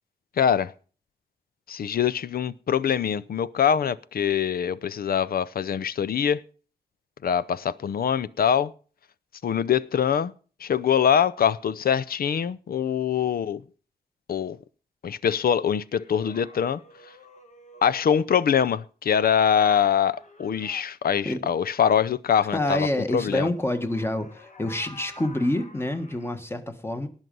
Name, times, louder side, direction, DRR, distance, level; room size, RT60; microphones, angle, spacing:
voice 1, 0.4-0.7 1.7-6.4 7.2-8.7 9.4-10.3 10.6-13.6 14.3-14.6 15.0-16.8 17.8-22.9 23.1-23.5, left 8 dB, 65° left, 0.6 m, -23 dB
sound 1, 15.9-18.3 19.3-20.9 23.4-26.3, left 2 dB, 45° left, 1.9 m, -49 dB
voice 2, 22.5-27.1, left 1 dB, 15° left, 1.4 m, -27 dB
19.0 x 6.4 x 5.3 m
wide cardioid pair, 150°, 17 cm